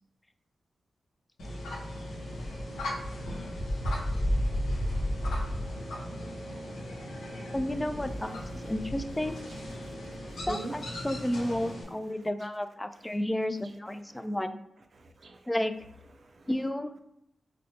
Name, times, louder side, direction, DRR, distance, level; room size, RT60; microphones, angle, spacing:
sound 1, 1.4-11.8, equal, 90° left, 0.7 m, -34 dB
voice 1, 7.5-9.4 10.5-14.6 15.5-15.7 16.5-17.0, left 1 dB, 20° left, 10 dB, 0.3 m, -32 dB
voice 2, 9.8-11.1 12.1-12.3 13.0-13.1 14.1-14.4 15.0-15.5 16.2-16.5, right 3 dB, 60° right, 5 dB, 0.5 m, -45 dB
4.2 x 2.0 x 2.8 m, 0.80 s
supercardioid pair, 45°, 0 cm